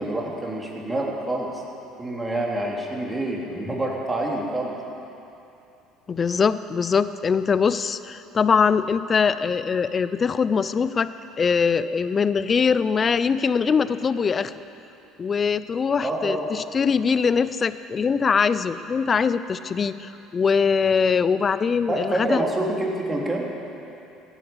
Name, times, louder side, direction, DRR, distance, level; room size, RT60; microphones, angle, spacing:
voice 1, 0.0-1.6 2.0-4.7 16.0-16.5 21.9-23.5, right 1 dB, 20° right, -2 dB, 3.3 m, -27 dB
voice 2, 6.1-11.1 11.4-14.5 15.2-22.4, left 6 dB, 35° left, 14 dB, 0.6 m, -22 dB
16.5 x 10.0 x 7.1 m, 2.8 s
hypercardioid pair, 70°, 0 cm